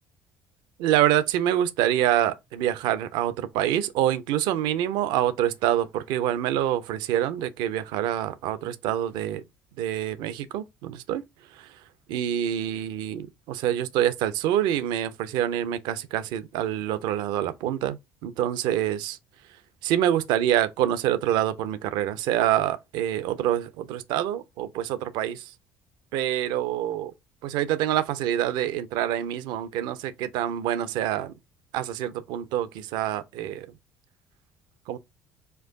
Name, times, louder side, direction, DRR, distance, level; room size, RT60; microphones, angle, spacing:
voice 1, 0.8-9.4 9.8-11.2 11.5-11.7 12.1-19.2 19.8-25.5 26.1-27.1 27.4-31.3 31.7-33.7 34.9-35.0, right 11 dB, 65° right, 0.5 m, -26 dB
4.5 x 2.5 x 3.5 m
hypercardioid pair, 55°, 8 cm